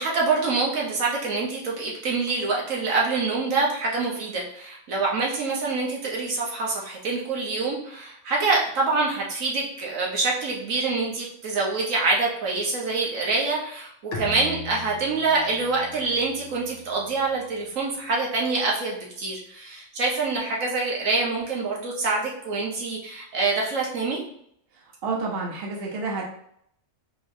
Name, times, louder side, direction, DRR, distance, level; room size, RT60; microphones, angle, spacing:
voice 1, 0.0-24.2, right 3 dB, 85° right, -3 dB, 1.4 m, -26 dB
Bowed string instrument, 14.1-17.6, left 2 dB, 80° left, 1.0 m, -39 dB
voice 2, 25.0-26.2, right 3 dB, 55° right, -1 dB, 1.0 m, -29 dB
4.0 x 3.1 x 2.6 m, 0.68 s
omnidirectional pair, 1.3 m